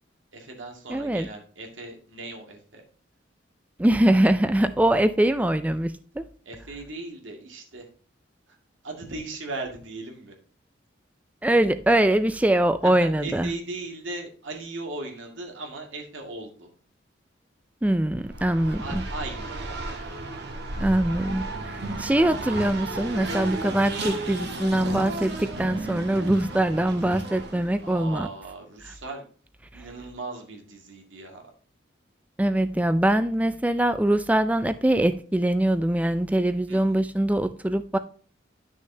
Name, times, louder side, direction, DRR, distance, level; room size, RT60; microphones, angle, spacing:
voice 1, 0.3-2.8 6.5-7.9 8.5-8.6 8.8-10.3 12.8-16.7 18.8-19.8 27.8-29.2 29.7-31.4 36.7-37.0, right 2 dB, 85° right, 2.1 m, -38 dB
voice 2, 0.9-1.3 3.8-6.3 11.4-13.5 17.8-19.0 20.8-28.3 32.4-38.0, right 1 dB, 10° right, 0.4 m, -23 dB
Race car auto racing, 18.2-27.9, right 2 dB, 60° right, 1.6 m, -33 dB
10.5 x 6.3 x 2.8 m
head